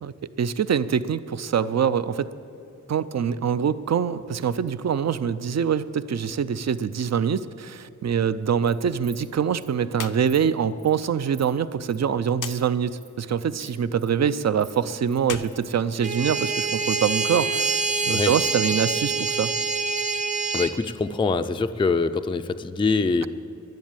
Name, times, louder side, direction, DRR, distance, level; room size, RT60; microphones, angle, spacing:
voice 1, 0.0-2.3 2.9-19.5, right 7 dB, 55° right, 15 dB, 0.5 m, -24 dB
Insect, 8.4-8.7 9.0-9.3 9.6-9.7 10.0-10.4 10.8-11.0 11.3-11.5 11.8-12.0 12.4-12.5 12.8-13.1 13.6-14.1 14.4-15.7, right 4 dB, 85° right, 2.8 m, -48 dB
sound 1, 9.9-10.2 10.5-10.6 12.3-12.6 15.2-16.5, left 8 dB, 80° left, 0.6 m, -36 dB
sound 2, 16.0-20.7, right 4 dB, 25° right, 0.9 m, -26 dB
voice 2, 20.5-23.3, left 4 dB, 15° left, 9 dB, 0.4 m, -24 dB
11.0 x 10.5 x 8.9 m, 2.6 s
wide cardioid pair, 120°, 31 cm